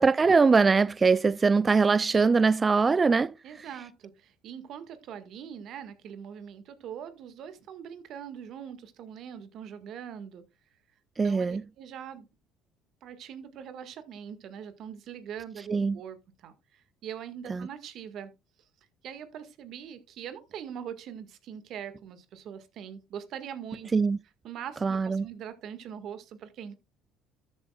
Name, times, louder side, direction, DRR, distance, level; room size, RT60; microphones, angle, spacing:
voice 1, 0.0-3.3 11.2-11.6 15.7-16.0 17.5-17.7 23.9-24.2 24.8-25.3, right 4 dB, 30° right, 0.4 m, -22 dB
voice 2, 3.4-10.4 11.2-12.3 13.0-18.3 19.0-23.9 24.4-26.7, right 8 dB, 60° right, 1.8 m, -42 dB
13.5 x 7.7 x 2.4 m
supercardioid pair, 75°, 0 cm